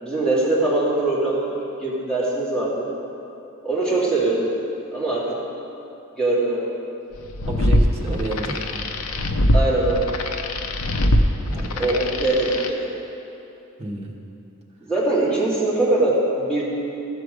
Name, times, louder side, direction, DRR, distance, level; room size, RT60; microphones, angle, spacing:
voice 1, 0.0-2.9 3.6-4.5 4.9-5.4 6.2-6.6 9.5-10.1 11.8-12.9 14.9-16.6, right 2 dB, 5° left, -8 dB, 2.1 m, -22 dB
sound 1, 7.2-12.7, left 1 dB, 90° left, 0.7 m, -22 dB
voice 2, 7.5-8.8 11.5-11.9 13.8-14.2, right 1 dB, 30° right, -2 dB, 1.2 m, -30 dB
14.0 x 5.7 x 5.1 m, 2.9 s
head